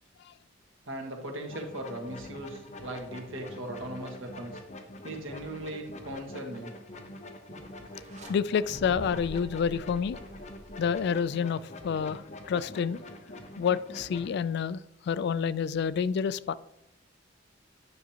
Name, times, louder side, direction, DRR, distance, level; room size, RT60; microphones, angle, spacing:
voice 1, 0.9-4.6 5.0-6.7, right 1 dB, 90° right, 1.5 m, -38 dB
sound 1, 1.5-14.3, left 1 dB, 35° left, 0.8 m, -45 dB
sound 2, 7.9-8.3 8.7-11.2, equal, 35° right, 1.0 m, -45 dB
voice 2, 8.3-10.2 10.8-13.0 13.6-14.8 15.1-16.5, left 7 dB, 60° left, 0.3 m, -28 dB
9.7 x 6.0 x 2.9 m
head